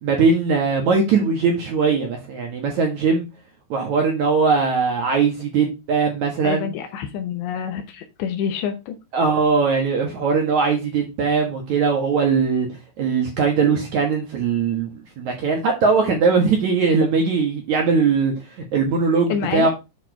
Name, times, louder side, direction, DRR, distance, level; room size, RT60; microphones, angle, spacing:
voice 1, 0.0-3.3 3.7-6.7 9.1-12.7 13.0-18.3 18.7-19.7, right 5 dB, 60° right, 2.0 m, -20 dB
voice 2, 6.4-9.0 19.3-19.7, left 8 dB, 80° left, 3.1 m, -27 dB
8.6 x 4.5 x 4.5 m
omnidirectional pair, 5.2 m